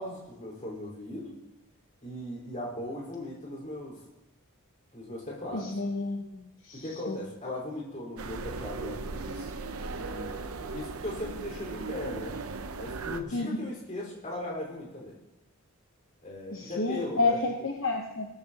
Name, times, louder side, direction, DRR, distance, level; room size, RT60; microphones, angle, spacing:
voice 1, 0.0-1.4 2.0-4.0 4.9-5.8 6.7-9.5 10.0-12.4 12.8-15.2 16.2-17.4, left 1 dB, 35° left, -3 dB, 4.5 m, -38 dB
voice 2, 5.5-7.2 13.3-13.5 16.5-18.3, left 3 dB, 60° left, 3 dB, 0.9 m, -30 dB
sound 1, 8.2-13.2, right 4 dB, 80° right, 0.8 m, -37 dB
18.5 x 13.5 x 2.9 m, 0.95 s
head